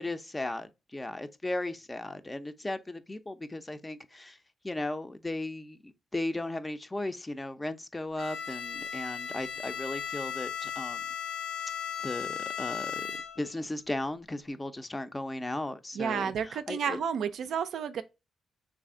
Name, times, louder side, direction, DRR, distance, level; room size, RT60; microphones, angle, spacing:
voice 1, 0.0-4.4 4.6-11.0 12.0-13.0 13.4-17.0, left 2 dB, 20° left, 0.5 m, -36 dB
Bowed string instrument, 8.2-13.6, left 8 dB, 80° left, 0.5 m, -36 dB
voice 2, 15.9-18.0, right 7 dB, 75° right, 0.3 m, -31 dB
3.2 x 2.5 x 3.6 m
supercardioid pair, 50°, 0 cm